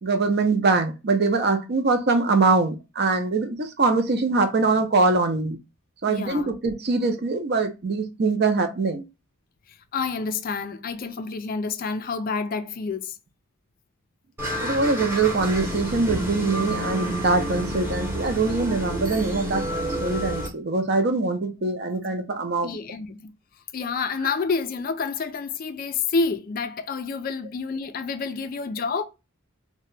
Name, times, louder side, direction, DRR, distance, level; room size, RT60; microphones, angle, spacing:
voice 1, 0.0-5.6 6.0-9.0 14.6-22.8, right 3 dB, 50° right, 0.5 m, -23 dB
voice 2, 6.1-6.5 9.9-13.2 22.6-23.3 23.7-29.0, left 4 dB, 40° left, 0.3 m, -28 dB
sound 1, 14.4-20.5, equal, 10° right, 0.8 m, -29 dB
2.8 x 2.2 x 3.2 m
head